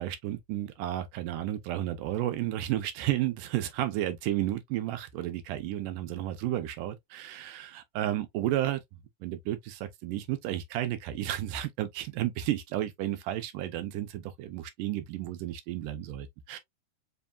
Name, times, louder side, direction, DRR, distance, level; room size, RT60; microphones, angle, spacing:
voice 1, 0.0-8.8 9.2-16.6, right 13 dB, 75° right, 2.1 m, -32 dB
5.5 x 3.0 x 2.3 m
omnidirectional pair, 4.2 m